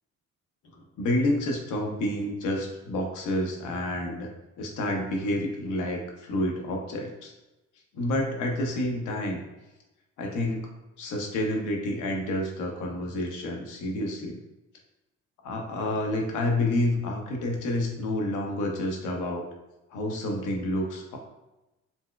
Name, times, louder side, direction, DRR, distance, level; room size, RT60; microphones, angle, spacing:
voice 1, 1.0-4.3 4.6-7.3 7.9-9.4 10.2-10.6 11.0-14.4 15.4-19.4 19.9-21.2, left 1 dB, 90° left, 1 dB, 0.7 m, -29 dB
4.1 x 2.2 x 2.3 m, 1.0 s
cardioid pair, 90°, 30 cm